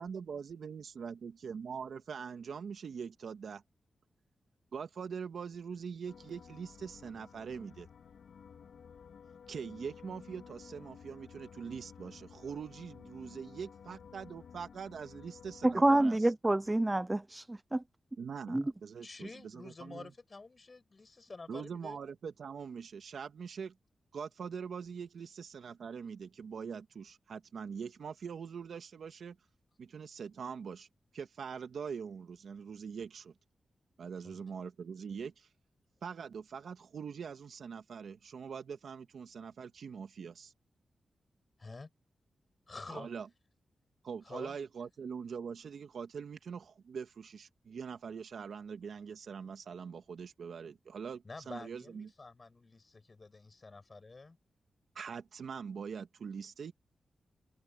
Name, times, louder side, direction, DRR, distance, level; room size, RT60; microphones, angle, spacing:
voice 1, 0.0-3.6 4.7-7.9 9.5-16.2 18.2-20.1 21.5-23.7 24.1-29.4 29.8-30.9 31.1-33.3 34.0-35.5 36.0-40.5 42.9-43.3 44.0-52.1 55.0-56.7, right 6 dB, 75° right, 1.9 m, -43 dB
sound 1, 6.1-16.0, left 7 dB, 80° left, 3.2 m, -54 dB
voice 2, 15.6-17.8 18.5-18.6, right 1 dB, 15° right, 0.4 m, -28 dB
voice 3, 19.0-22.0 34.2-34.4 41.6-41.9 42.7-43.1 44.2-44.6 51.2-54.4, left 3 dB, 30° left, 7.4 m, -49 dB
open air
wide cardioid pair, 120°, 0 cm